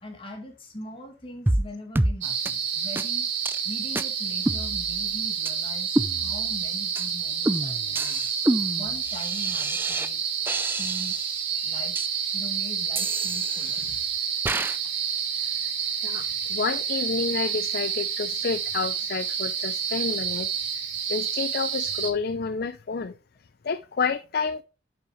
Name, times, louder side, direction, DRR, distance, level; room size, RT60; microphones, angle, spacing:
voice 1, 0.0-3.3 3.6-8.3 8.7-10.2 10.8-11.2 11.6-12.0 12.3-14.0, left 1 dB, 30° left, 2.3 m, -41 dB
sound 1, 1.5-1.7 2.0-2.2 2.5-2.6 3.0-3.1 3.5-3.6 4.0-4.1 4.5-5.1 5.5-5.6 6.0-6.6 7.0-7.1 7.5-10.1 10.5-11.4 12.0-12.1 13.0-13.9 14.5-14.8, right 1 dB, 10° right, 0.4 m, -28 dB
sound 2, 2.2-22.1, right 7 dB, 70° right, 2.3 m, -29 dB
voice 2, 16.0-20.8 21.1-23.2 23.6-24.6, left 5 dB, 55° left, 0.5 m, -30 dB
10.5 x 5.7 x 3.1 m
head